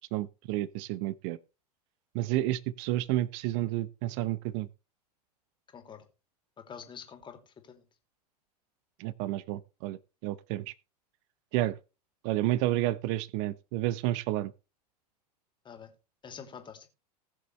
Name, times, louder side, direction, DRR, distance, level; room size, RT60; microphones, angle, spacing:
voice 1, 0.1-1.4 2.1-4.7 9.0-10.7 11.5-11.8 12.2-14.5, right 15 dB, 45° right, 0.8 m, -30 dB
voice 2, 5.7-6.0 6.6-7.4 7.7-7.8 15.6-15.9 16.2-16.9, left 7 dB, 25° left, 2.7 m, -46 dB
20.0 x 6.8 x 3.2 m
figure-of-eight pair, 90°, 21 cm